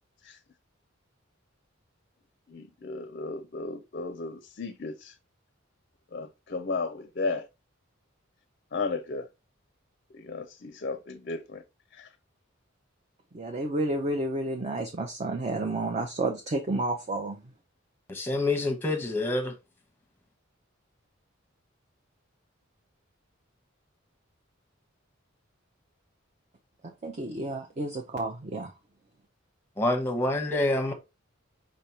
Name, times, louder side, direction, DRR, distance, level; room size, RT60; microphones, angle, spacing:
voice 1, 2.5-5.1 6.1-7.5 8.7-9.3 10.1-11.6 11.9-12.1, left 3 dB, 45° left, 0.5 m, -34 dB
voice 2, 13.3-17.4 27.0-28.7, right 2 dB, 35° right, 0.6 m, -31 dB
voice 3, 18.1-19.5 29.8-30.9, left 2 dB, 10° left, 0.9 m, -27 dB
5.1 x 3.4 x 2.8 m
head